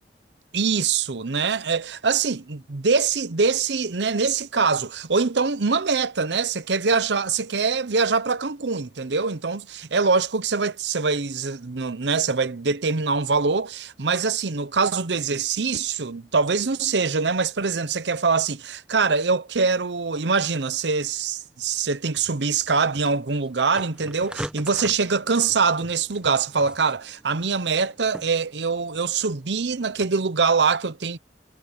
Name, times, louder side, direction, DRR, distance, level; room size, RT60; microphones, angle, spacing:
voice 1, 0.5-31.2, right 4 dB, 75° right, 0.8 m, -24 dB
sound 1, 22.2-30.1, equal, 5° right, 1.1 m, -43 dB
head